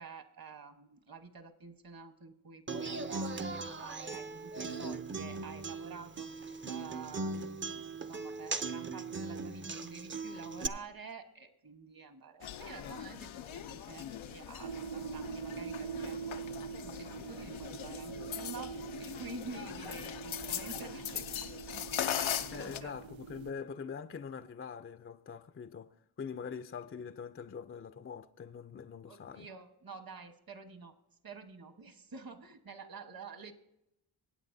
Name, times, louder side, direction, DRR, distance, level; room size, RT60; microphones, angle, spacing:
voice 1, 0.0-6.3 6.7-7.8 8.1-21.9 22.2-22.9 29.1-30.9 31.2-33.5, right 5 dB, 50° right, 1.3 m, -49 dB
Human voice / Acoustic guitar, 2.7-10.7, right 3 dB, 25° right, 0.6 m, -39 dB
sound 1, 12.4-22.8, left 10 dB, 85° left, 0.6 m, -40 dB
sound 2, 14.6-23.5, right 7 dB, 85° right, 0.6 m, -44 dB
voice 2, 22.5-25.9 26.2-29.5, left 6 dB, 30° left, 0.5 m, -43 dB
22.0 x 8.8 x 2.7 m
cardioid pair, 60°, 46 cm